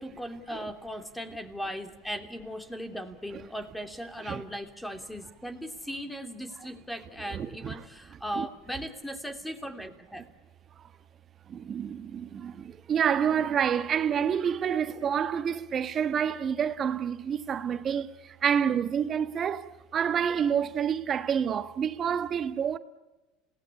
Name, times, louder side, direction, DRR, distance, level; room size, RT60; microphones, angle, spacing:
voice 1, 0.0-10.3 11.8-12.0 12.3-12.6, equal, 5° left, 3.0 m, -38 dB
voice 2, 7.3-7.7 8.3-8.5 10.8-10.9 11.5-22.8, right 8 dB, 40° right, 1.2 m, -28 dB
27.5 x 18.5 x 9.9 m
hypercardioid pair, 85°, 0 cm